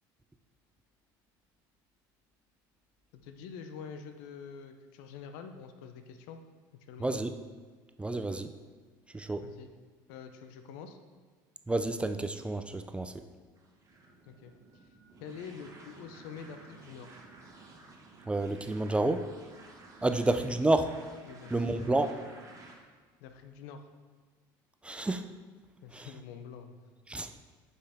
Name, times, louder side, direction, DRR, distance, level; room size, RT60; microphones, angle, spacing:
voice 1, 3.1-6.4 6.9-7.1 9.4-9.7 10.1-11.0 14.3-14.8 15.2-17.2 20.1-20.2 21.2-22.0 23.2-23.8 25.8-26.9, left 6 dB, 75° left, 7 dB, 0.7 m, -46 dB
voice 2, 7.0-7.3 8.0-8.5 9.1-9.5 11.7-13.1 18.3-19.3 20.0-20.9 21.5-22.2 24.8-25.3 25.9-26.1 27.1-27.3, right 2 dB, 10° right, 8 dB, 0.4 m, -29 dB
sound 1, 13.6-22.8, right 3 dB, 35° right, 1.4 m, -53 dB
8.6 x 5.6 x 3.5 m, 1.5 s
supercardioid pair, 90°, 10 cm